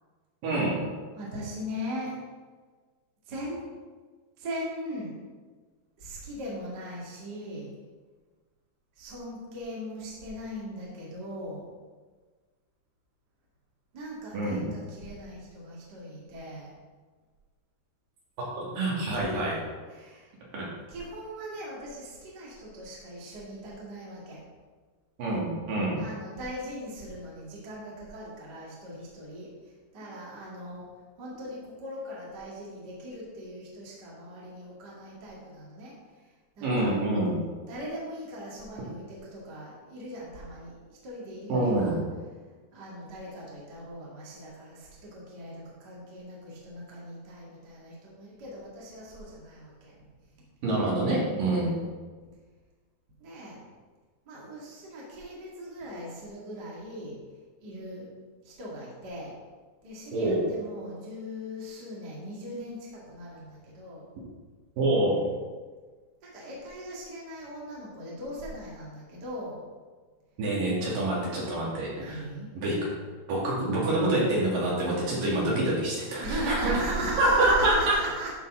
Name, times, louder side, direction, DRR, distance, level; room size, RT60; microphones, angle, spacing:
voice 1, 0.4-0.8 14.3-14.7 18.4-19.6 20.5-20.7 25.2-26.0 36.6-37.4 41.5-42.0 50.6-51.7 60.1-60.4 64.8-65.2 70.4-72.2 72.6-72.9 73.3-76.7 77.2-77.7, right 2 dB, 60° right, -6 dB, 3.5 m, -26 dB
voice 2, 1.1-2.2 3.2-3.6 4.4-5.2 6.0-7.7 8.9-11.7 13.9-16.7 19.1-19.3 19.9-20.3 20.9-24.4 26.0-30.9 31.2-37.0 37.7-42.0 42.7-50.0 51.5-51.9 53.2-53.6 54.3-57.2 57.6-58.1 58.4-59.3 59.8-64.1 66.2-69.6 71.9-72.5 76.2-78.3, equal, 35° right, -5 dB, 1.7 m, -39 dB
11.5 x 5.7 x 3.8 m, 1.4 s
omnidirectional pair, 4.9 m